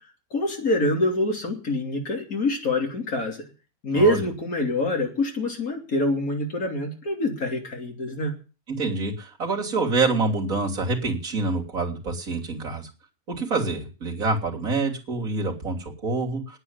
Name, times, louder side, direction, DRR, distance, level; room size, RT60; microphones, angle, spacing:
voice 1, 0.3-3.5 3.8-8.4, left 1 dB, 70° left, 1 dB, 3.6 m, -25 dB
voice 2, 3.9-4.2 8.7-12.9 13.3-16.6, right 3 dB, 65° right, -1 dB, 3.6 m, -26 dB
9.8 x 9.3 x 9.6 m, 0.35 s
omnidirectional pair, 1.6 m